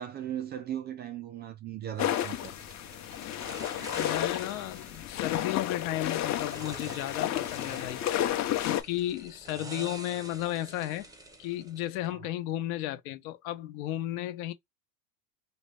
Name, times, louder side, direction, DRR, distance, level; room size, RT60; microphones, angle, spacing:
voice 1, 0.0-2.5 12.1-12.3, right 10 dB, 25° right, 0.4 m, -38 dB
sound 1, 2.0-8.8, left 12 dB, 35° left, 0.8 m, -32 dB
sound 2, 2.0-12.1, right 2 dB, 10° right, 0.7 m, -48 dB
voice 2, 3.9-8.0 8.6-11.1 11.4-14.5, left 14 dB, 60° left, 1.0 m, -34 dB
3.0 x 2.7 x 3.3 m
hypercardioid pair, 105°, 48 cm